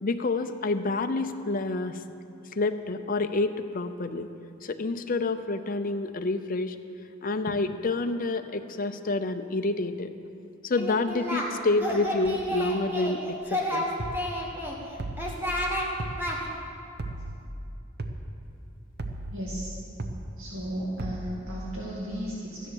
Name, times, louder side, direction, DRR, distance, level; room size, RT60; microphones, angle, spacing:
voice 1, 0.0-2.0 2.5-4.3 4.6-6.8 7.2-10.1 10.6-13.9, left 3 dB, 45° left, 8 dB, 0.6 m, -28 dB
Singing, 10.8-11.5 11.8-13.2 13.5-14.7 15.2-15.9 16.2-16.4, equal, 10° right, 1.7 m, -30 dB
sound 1, 14.0-14.2 15.0-15.4 16.0-16.2 17.0-17.4 18.0-18.2 19.0-19.4 20.0-20.2 21.0-21.4, right 2 dB, 55° right, 0.9 m, -35 dB
voice 2, 19.3-19.7 20.4-22.7, equal, 85° right, -6 dB, 2.4 m, -35 dB
14.0 x 10.0 x 6.3 m, 2.6 s
head